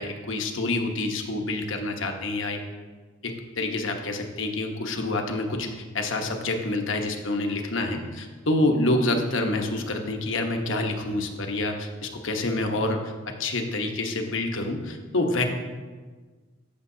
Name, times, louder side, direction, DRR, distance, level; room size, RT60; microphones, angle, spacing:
voice 1, 0.0-2.6 3.2-5.7 5.9-13.1 13.4-15.5, left 2 dB, 70° left, 3 dB, 1.0 m, -27 dB
14.0 x 7.0 x 2.7 m, 1.4 s
head